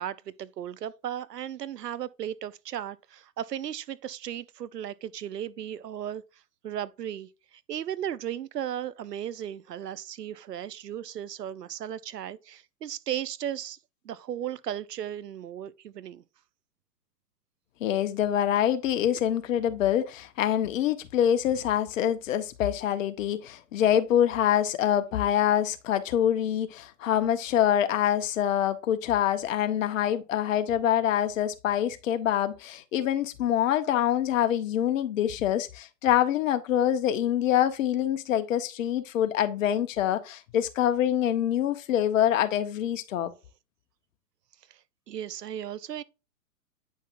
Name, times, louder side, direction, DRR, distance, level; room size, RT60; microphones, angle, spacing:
voice 1, 0.0-13.8 14.0-16.2 44.7-46.0, right 10 dB, 85° right, 0.8 m, -36 dB
voice 2, 17.8-43.3, left 10 dB, 55° left, 1.3 m, -25 dB
9.4 x 5.5 x 2.6 m
hypercardioid pair, 125°, 47 cm